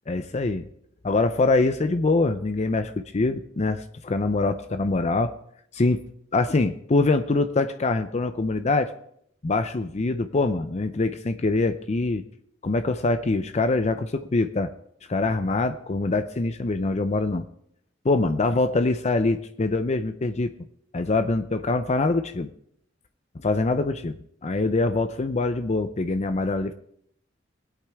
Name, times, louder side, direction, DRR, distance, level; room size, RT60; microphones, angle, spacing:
voice 1, 0.1-0.7 1.0-5.3 5.7-6.0 6.3-8.9 9.4-12.2 12.6-14.7 15.1-17.4 18.0-20.5 20.9-22.5 23.4-24.2 24.4-26.7, left 3 dB, 35° left, 9 dB, 0.5 m, -24 dB
20.0 x 8.3 x 3.5 m, 0.70 s
head